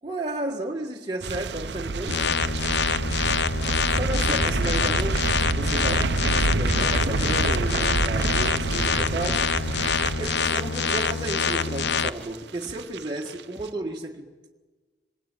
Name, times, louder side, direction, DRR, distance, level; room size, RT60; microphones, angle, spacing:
voice 1, 0.0-2.2 3.9-9.5 10.2-14.5, right 1 dB, 25° right, 1.7 m, -33 dB
sound 1, 1.2-12.4 12.6-13.0 13.3-13.4, right 3 dB, 65° right, 0.7 m, -28 dB
voice 2, 1.9-3.3 12.7-12.8, equal, 10° right, 3.8 m, -49 dB
sound 2, 2.1-12.1, left 6 dB, 65° left, 0.8 m, -26 dB
sound 3, 2.1-2.8 3.0-12.4 12.6-13.0 13.2-13.7, right 1 dB, 5° left, 2.7 m, -50 dB
26.5 x 22.0 x 9.1 m
head